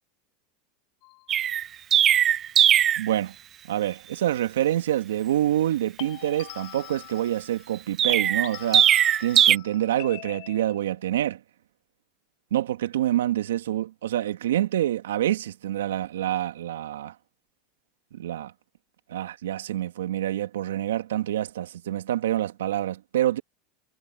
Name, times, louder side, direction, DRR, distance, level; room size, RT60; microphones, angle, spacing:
sound 1, 1.0-1.3 6.0-7.8 8.1-11.0, left 24 dB, 65° left, 2.0 m, -43 dB
Chirp tweet, 1.3-3.1 8.0-9.6, right 10 dB, 40° right, 0.9 m, -19 dB
voice 1, 3.0-3.3 3.7-8.9 9.2-11.4 12.5-17.1 18.2-18.5 19.1-23.4, right 12 dB, 85° right, 2.1 m, -26 dB
hypercardioid pair, 95°, 0 cm